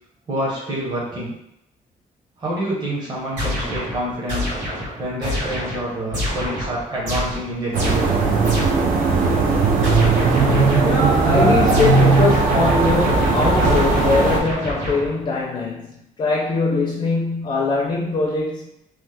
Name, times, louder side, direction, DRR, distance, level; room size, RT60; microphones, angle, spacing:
voice 1, 0.3-1.4 2.4-4.5 5.0-8.2, right 1 dB, 30° right, -6 dB, 0.8 m, -27 dB
sound 1, 3.4-9.0 9.8-11.1 11.7-15.4, equal, 60° right, 1.4 m, -27 dB
sound 2, 7.7-14.4, right 3 dB, 80° right, 0.5 m, -17 dB
voice 2, 10.8-18.7, left 3 dB, 35° left, -2 dB, 0.4 m, -22 dB
3.0 x 2.0 x 3.3 m, 0.80 s
cardioid pair, 170°, 14 cm